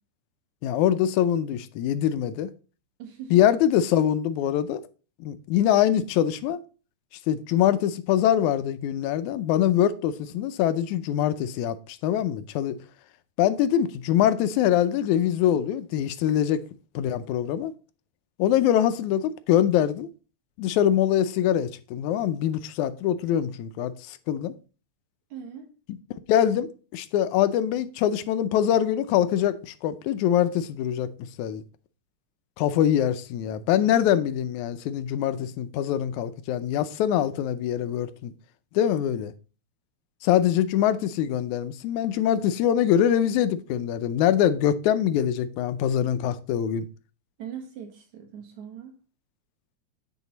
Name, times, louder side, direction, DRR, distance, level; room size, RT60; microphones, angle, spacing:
voice 1, 0.6-2.5 3.3-4.8 5.2-6.6 7.3-11.8 12.0-12.8 13.4-16.6 17.0-17.7 18.4-20.1 20.6-24.5 26.3-31.1 31.4-31.6 32.6-38.3 38.8-39.3 40.2-46.9, left 10 dB, 90° left, 2.1 m, -23 dB
voice 2, 3.0-3.4 25.3-25.7 47.4-49.0, right 8 dB, 80° right, 3.1 m, -40 dB
9.0 x 4.7 x 4.0 m
omnidirectional pair, 3.3 m